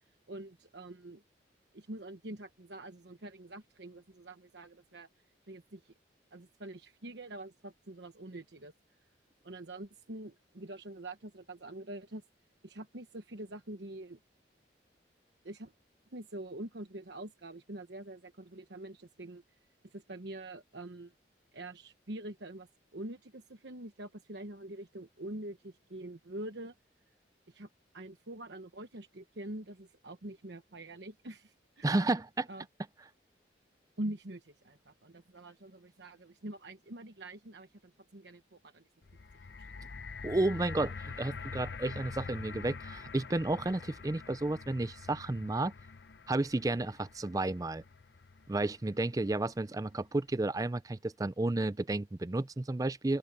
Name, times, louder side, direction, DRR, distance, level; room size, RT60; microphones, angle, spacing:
voice 1, 0.3-1.2 1.7-5.1 5.5-5.9 6.3-8.7 9.4-12.2 12.6-14.2 15.4-15.7 16.1-19.4 19.9-21.1 21.5-22.7 22.9-26.7 27.5-27.7 27.9-31.9 32.5-32.6 34.0-38.9 39.5-39.9, right 1 dB, 70° right, 1.1 m, -45 dB
voice 2, 31.8-32.5 40.2-45.7 46.3-47.8 48.5-53.2, right 2 dB, 20° right, 0.4 m, -32 dB
sound 1, 39.0-49.3 50.0-50.1, left 5 dB, 65° left, 0.7 m, -46 dB
open air
head